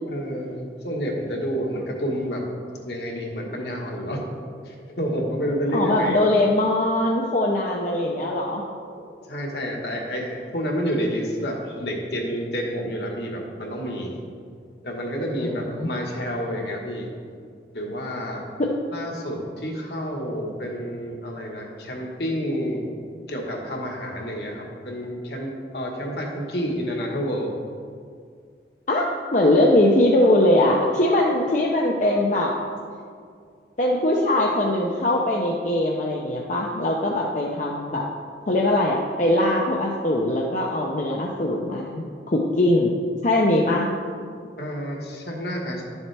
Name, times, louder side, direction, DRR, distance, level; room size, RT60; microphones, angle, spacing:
voice 1, 0.0-2.4 2.8-4.2 4.6-6.2 9.3-14.1 14.8-17.1 17.7-18.5 18.9-22.9 23.3-27.5 44.6-45.8, equal, 65° left, -1 dB, 1.4 m, -29 dB
voice 2, 5.7-8.6 15.4-15.9 18.6-18.7 28.9-32.6 33.8-38.1 38.5-42.9 43.2-43.9, left 1 dB, 45° left, -2 dB, 0.6 m, -21 dB
11.0 x 7.2 x 3.4 m, 2.2 s
head